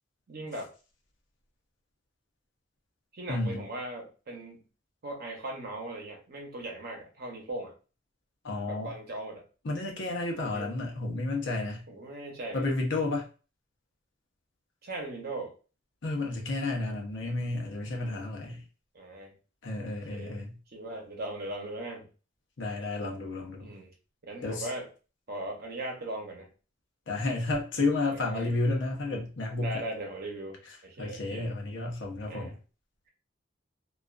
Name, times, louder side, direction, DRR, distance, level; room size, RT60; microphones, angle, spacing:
voice 1, 0.3-0.7 3.1-4.6 5.0-7.7 8.7-9.5 10.4-10.7 11.9-12.8 14.8-15.5 17.9-18.3 18.9-19.3 20.1-20.4 20.7-22.1 23.6-23.9 24.2-24.9 25.3-26.5 28.1-28.6 29.6-31.5 32.3-32.6, right 2 dB, 55° right, 1 dB, 0.8 m, -39 dB
voice 2, 3.3-3.6 8.4-8.9 9.6-11.8 12.5-13.3 16.0-18.6 19.6-20.5 22.6-23.7 24.4-24.7 27.1-29.8 31.0-32.6, left 2 dB, 65° left, 1 dB, 0.7 m, -31 dB
2.4 x 2.3 x 2.4 m, 0.35 s
head